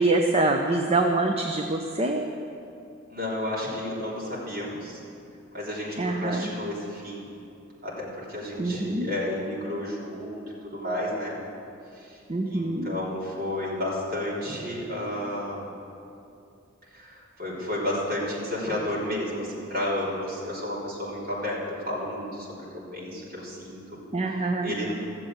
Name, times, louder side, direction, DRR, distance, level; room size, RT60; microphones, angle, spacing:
voice 1, 0.0-2.3 6.0-6.5 8.6-9.1 12.3-12.9 24.1-24.7, right 2 dB, 30° right, 3 dB, 0.6 m, -25 dB
voice 2, 3.1-5.0 5.5-7.3 7.8-11.3 11.9-12.2 12.4-15.7 16.9-24.0 24.3-24.9, left 1 dB, 50° right, -7 dB, 3.8 m, -32 dB
14.5 x 7.5 x 7.9 m, 2.6 s
head